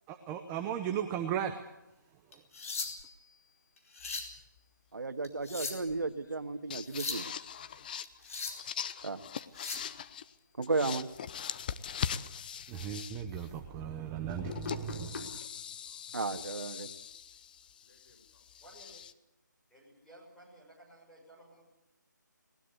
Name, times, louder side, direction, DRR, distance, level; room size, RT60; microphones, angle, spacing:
voice 1, 0.1-1.5 12.7-15.3, right 9 dB, 10° right, 7 dB, 0.8 m, -36 dB
sound 1, 2.3-3.2 3.8-4.4 5.2-6.0 6.7-7.3 8.0-8.7 9.4-9.9 12.0-12.1 12.6-12.9 13.3-13.5 14.6-15.2 16.3-16.5, left 4 dB, 45° left, 4.7 m, -40 dB
sound 2, 4.0-4.6 6.3-6.4 6.7-10.3 10.6-13.5 14.3-19.1, left 8 dB, 25° left, 0.7 m, -41 dB
voice 2, 4.9-7.3 9.0-9.2 10.6-11.1 16.1-16.9, right 3 dB, 65° right, 7 dB, 2.0 m, -34 dB
voice 3, 5.9-7.1 7.5-8.0 15.1-15.2 15.5-16.0 16.7-16.8 17.8-18.4, left 2 dB, 85° left, 4 dB, 6.0 m, -68 dB
voice 4, 18.6-19.0 19.7-21.6, right 1 dB, 5° left, -6 dB, 6.8 m, -56 dB
20.5 x 19.5 x 8.3 m, 0.92 s
figure-of-eight pair, 160°, 10 cm